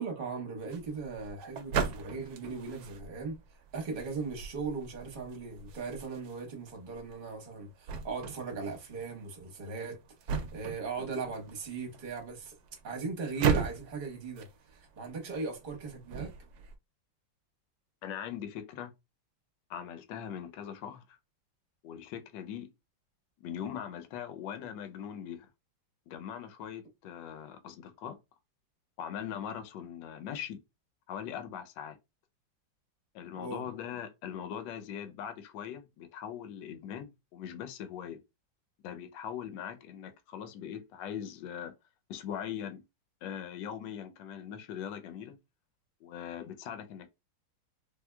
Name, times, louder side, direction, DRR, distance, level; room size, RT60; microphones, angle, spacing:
voice 1, 0.0-3.4 3.7-12.5 12.8-16.3 33.4-33.7, right 4 dB, 40° right, 0.9 m, -38 dB
sound 1, 0.6-16.8, right 6 dB, 70° right, 1.0 m, -38 dB
voice 2, 18.0-18.9 19.7-21.0 21.8-22.7 23.4-25.5 26.1-28.2 29.0-30.6 31.1-32.0 33.1-38.2 38.8-41.7 42.1-42.8 43.2-45.4 46.0-47.1, left 9 dB, 80° left, 1.3 m, -41 dB
3.5 x 2.7 x 2.2 m
omnidirectional pair, 2.0 m